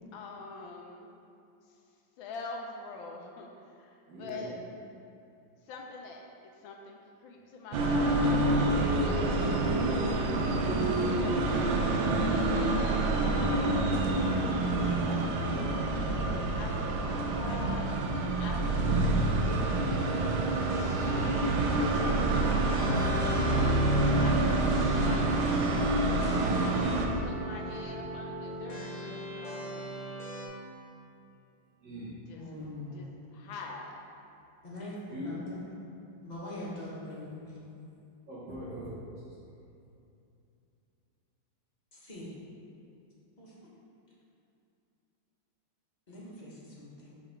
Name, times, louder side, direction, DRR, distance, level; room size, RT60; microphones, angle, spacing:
voice 1, 0.1-1.1 2.2-3.5 3.8-4.5 5.7-9.5 10.0-11.6 12.2-15.5 16.5-18.0 18.4-19.6 21.1-21.7 22.7-24.5 24.8-29.9 32.3-32.4 32.9-33.1 33.3-34.0, left 3 dB, 85° left, 1 dB, 1.4 m, -45 dB
voice 2, 4.1-4.6 31.8-32.2 35.1-35.3 38.3-39.2, equal, 65° right, -10 dB, 1.8 m, -41 dB
sound 1, 7.7-27.1, right 2 dB, 80° right, 1.4 m, -27 dB
sound 2, 17.4-30.5, right 1 dB, 45° left, 0.6 m, -40 dB
voice 3, 32.3-33.1 34.6-35.0 35.2-35.7 36.2-37.6 41.9-42.3 43.4-43.7 46.1-47.2, left 1 dB, 30° left, -6 dB, 1.0 m, -42 dB
5.6 x 3.6 x 5.7 m, 2.7 s
omnidirectional pair, 2.1 m